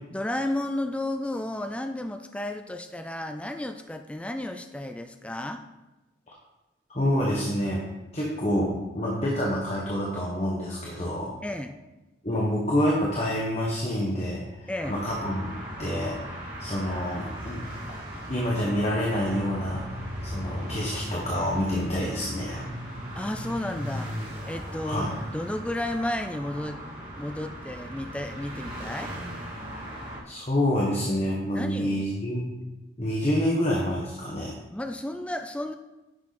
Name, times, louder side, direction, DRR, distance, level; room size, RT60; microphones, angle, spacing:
voice 1, 0.1-5.6 11.4-11.8 14.7-15.0 23.1-24.1 24.4-26.8 27.2-29.1 31.5-32.1 34.7-35.7, left 1 dB, 5° left, 7 dB, 0.4 m, -32 dB
voice 2, 6.9-7.8 8.1-11.3 12.2-15.5 15.8-17.6 18.3-22.6 24.8-25.1 30.2-32.5 33.0-34.5, equal, 35° left, -3 dB, 1.5 m, -27 dB
sound 1, 14.8-30.2, equal, 25° right, 2.8 m, -37 dB
10.5 x 7.3 x 4.2 m, 1.0 s
head